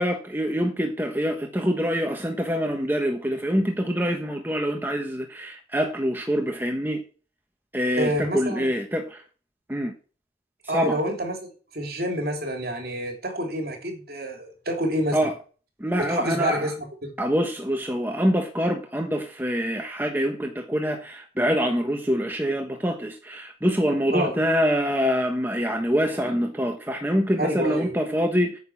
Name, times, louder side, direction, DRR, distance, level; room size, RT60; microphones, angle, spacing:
voice 1, 0.0-7.0 7.7-9.2 9.7-9.9 10.6-11.0 15.1-15.3 15.8-16.7 17.2-28.6, equal, 10° right, 1.2 m, -25 dB
voice 2, 8.0-8.7 10.7-15.3 16.0-17.1 24.1-24.3 27.4-27.9, equal, 55° right, 3.1 m, -28 dB
9.4 x 5.9 x 7.2 m
head